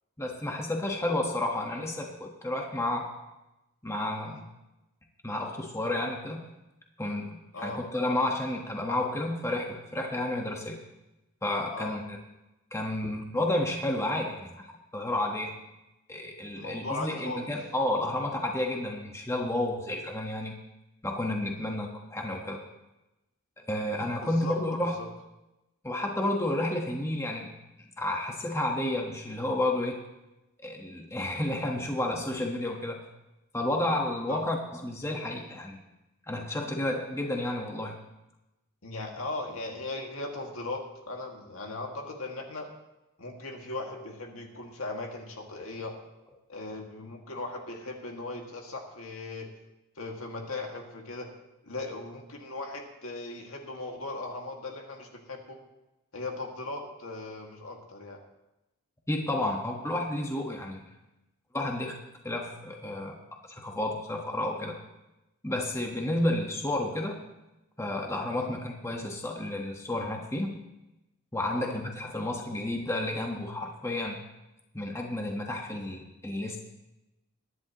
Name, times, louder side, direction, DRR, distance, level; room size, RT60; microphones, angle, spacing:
voice 1, 0.2-3.1 3.8-4.4 5.2-6.5 7.0-10.8 11.4-12.2 12.7-14.7 14.9-15.5 16.1-20.6 21.0-22.6 23.7-25.0 25.8-27.5 28.0-30.0 30.6-33.0 33.5-35.8 36.3-38.0 59.1-60.8 61.5-62.0 62.2-63.2 63.5-64.8 65.4-67.2 67.8-70.6 71.3-74.2 74.7-76.6, left 1 dB, 15° left, 1 dB, 1.3 m, -31 dB
voice 2, 16.6-17.5 21.6-21.8 24.2-25.1 34.3-34.4 38.8-42.7 43.2-45.9 46.5-49.5 50.0-51.3 51.6-55.6 56.1-58.2 68.4-68.6 71.5-71.7, left 2 dB, 70° left, 1 dB, 2.1 m, -38 dB
22.0 x 11.0 x 3.0 m, 0.96 s
head